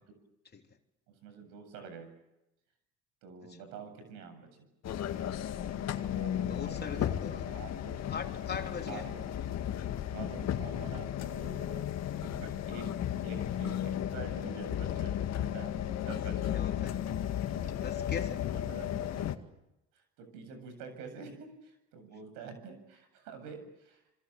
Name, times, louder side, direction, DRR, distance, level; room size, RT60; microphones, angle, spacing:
voice 1, 1.2-2.1 3.2-4.5 5.8-8.1 8.9-9.4 10.1-11.8 12.2-12.9 13.2-16.5 17.5-18.1 18.5-19.3 19.9-24.0, right 5 dB, 80° right, 7.9 m, -47 dB
sound 1, 4.8-19.4, left 10 dB, 55° left, 2.0 m, -34 dB
voice 2, 6.5-7.4 8.1-9.1 12.7-12.9 16.5-17.0 17.7-18.4, left 5 dB, 30° left, 3.5 m, -41 dB
27.5 x 27.0 x 7.5 m
supercardioid pair, 85°, 31 cm